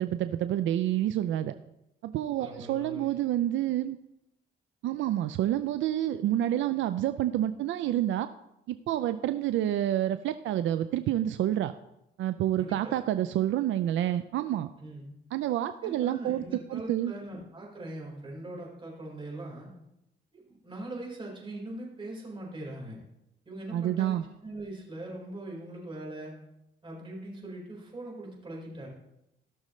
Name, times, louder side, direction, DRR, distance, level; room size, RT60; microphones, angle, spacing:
voice 1, 0.0-1.5 2.0-4.0 4.8-8.3 8.7-11.7 12.2-14.7 15.3-16.4 16.7-17.1 23.7-24.2, right 12 dB, 75° right, 11 dB, 0.5 m, -28 dB
voice 2, 2.4-3.1 12.6-12.9 14.8-15.1 15.8-19.7 20.3-23.0 23.4-26.4 26.8-28.9, right 1 dB, 25° right, -3 dB, 4.4 m, -41 dB
16.5 x 6.4 x 3.2 m, 0.86 s
cardioid pair, 90°, 20 cm